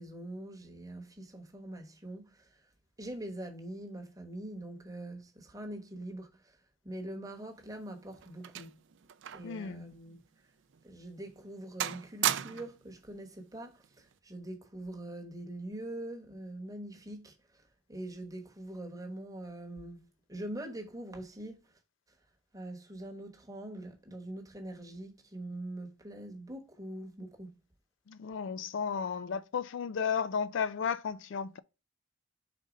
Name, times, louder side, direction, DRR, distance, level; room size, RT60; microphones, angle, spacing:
voice 1, 0.0-2.6 3.0-6.6 6.8-8.8 9.3-10.2 10.8-17.6 17.9-21.8 22.5-27.6, right 1 dB, 15° right, 1.1 m, -43 dB
sound 1, 7.5-9.6 9.9-10.1 10.7-10.8 11.3-11.5 11.8-12.8 13.8-14.1, right 11 dB, 55° right, 0.4 m, -36 dB
voice 2, 9.4-9.9 28.1-31.6, left 6 dB, 60° left, 0.3 m, -34 dB
5.1 x 3.9 x 4.9 m
head